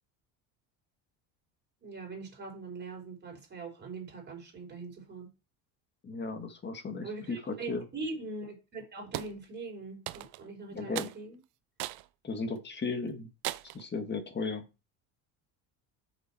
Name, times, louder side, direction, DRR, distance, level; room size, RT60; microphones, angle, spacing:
voice 1, 1.8-5.3 7.0-11.4, right 3 dB, 25° right, 0 dB, 5.0 m, -42 dB
voice 2, 6.0-7.8 10.7-11.1 12.2-13.3 13.7-14.6, left 4 dB, 25° left, 7 dB, 1.8 m, -35 dB
sound 1, 9.1-9.3 10.1-10.5 10.9-11.2 11.8-12.1 12.6-12.7 13.4-13.8, right 18 dB, 70° right, 0.7 m, -37 dB
7.6 x 6.9 x 4.5 m, 0.29 s
cardioid pair, 125°, 39 cm